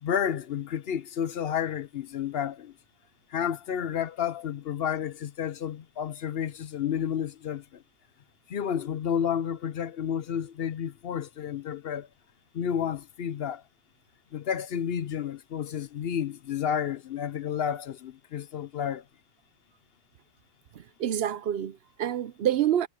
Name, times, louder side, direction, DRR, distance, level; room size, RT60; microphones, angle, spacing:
voice 1, 0.0-2.7 3.3-7.8 8.5-12.1 12.5-13.6 14.3-19.0, left 8 dB, 65° left, 0.9 m, -31 dB
voice 2, 20.7-22.9, right 11 dB, 65° right, 0.8 m, -27 dB
omnidirectional pair, 1.2 m